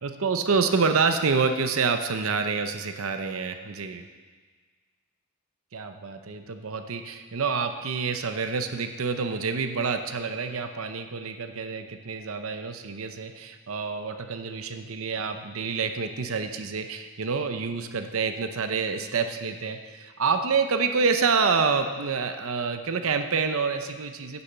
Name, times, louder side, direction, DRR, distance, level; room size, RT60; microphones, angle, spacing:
voice 1, 0.0-4.1 5.7-24.4, right 5 dB, 80° right, 7 dB, 0.7 m, -27 dB
9.7 x 7.1 x 6.8 m, 1.5 s
head